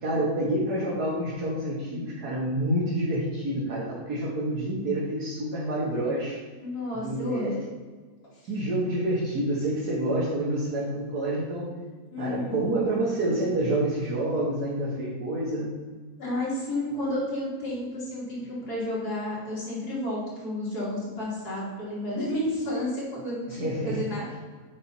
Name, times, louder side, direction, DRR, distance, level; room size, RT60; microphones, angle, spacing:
voice 1, 0.0-6.4 7.0-7.6 8.5-11.7 12.2-15.8 23.5-24.0, right 1 dB, 85° right, -6 dB, 2.1 m, -28 dB
voice 2, 6.6-7.7 8.3-8.5 12.1-12.6 16.2-24.4, left 1 dB, 85° left, -6 dB, 3.2 m, -31 dB
7.7 x 5.6 x 4.2 m, 1.4 s
omnidirectional pair, 1.6 m